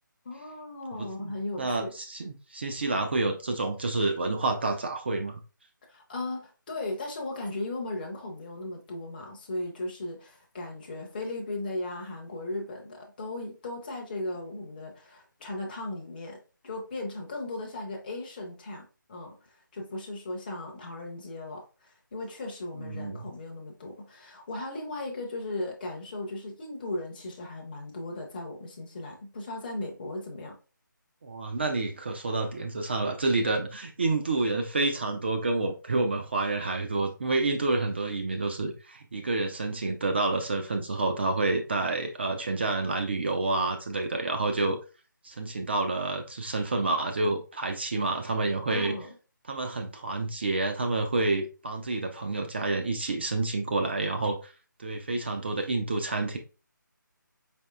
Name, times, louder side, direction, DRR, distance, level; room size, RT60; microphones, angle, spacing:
voice 1, 0.2-1.9 5.9-30.5 48.7-49.2, left 2 dB, 25° left, 0.6 m, -37 dB
voice 2, 1.0-5.4 22.8-23.3 31.2-44.8 45.2-48.9 49.5-54.5 54.8-56.4, right 2 dB, 30° right, 0.4 m, -29 dB
4.2 x 2.9 x 2.2 m
figure-of-eight pair, 155°, 11 cm